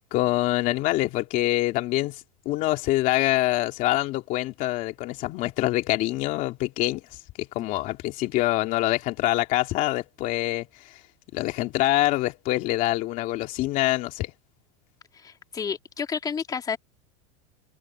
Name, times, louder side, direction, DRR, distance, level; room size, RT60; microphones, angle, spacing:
voice 1, 0.1-7.2 7.5-11.0 11.3-14.3, left 17 dB, 45° left, 2.7 m, -25 dB
voice 2, 15.1-16.8, left 6 dB, 20° left, 2.9 m, -31 dB
supercardioid pair, 140°, 18 cm